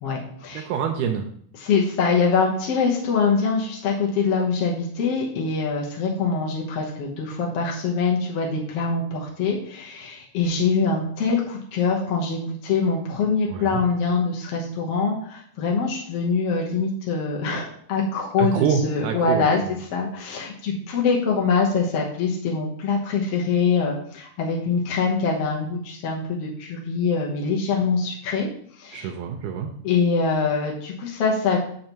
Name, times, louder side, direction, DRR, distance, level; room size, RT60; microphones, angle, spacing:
voice 1, 0.0-0.7 1.5-28.5 28.8-29.1 29.8-31.6, left 4 dB, 65° left, -2 dB, 1.7 m, -24 dB
voice 2, 0.5-1.3 13.5-13.8 18.4-19.5 28.9-29.7, right 7 dB, 80° right, 3 dB, 2.1 m, -26 dB
6.5 x 5.4 x 4.5 m, 0.62 s
omnidirectional pair, 3.6 m